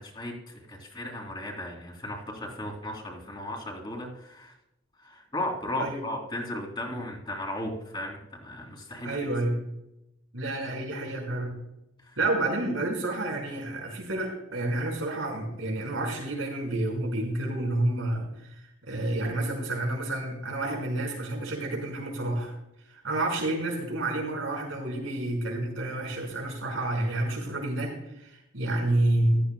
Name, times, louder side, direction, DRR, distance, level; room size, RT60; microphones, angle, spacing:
voice 1, 0.0-4.5 5.0-9.2 12.0-12.2, left 1 dB, 25° left, -1 dB, 2.6 m, -36 dB
voice 2, 9.0-9.6 10.3-11.6 12.2-18.6 18.9-22.5 23.0-29.4, right 1 dB, 90° right, 0 dB, 5.0 m, -29 dB
15.5 x 13.0 x 2.2 m, 0.84 s
head